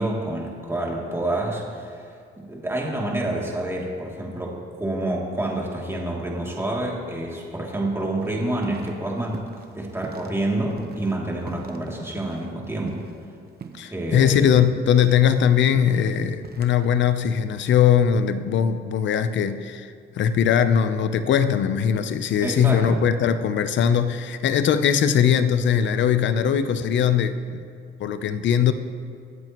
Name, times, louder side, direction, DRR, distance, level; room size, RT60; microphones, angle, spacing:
voice 1, 0.0-2.1 2.4-9.4 9.7-13.0 13.9-14.5 22.4-23.0, right 1 dB, 10° right, -3 dB, 2.7 m, -28 dB
sound 1, 8.2-9.0 9.2-10.3 10.7-13.3 13.6-13.9 14.2-16.9, right 6 dB, 50° right, 1.0 m, -42 dB
voice 2, 13.7-19.9 20.2-27.6 28.0-28.7, left 8 dB, 70° left, 11 dB, 0.7 m, -20 dB
23.0 x 7.8 x 3.0 m, 2.3 s
cardioid pair, 90°, 20 cm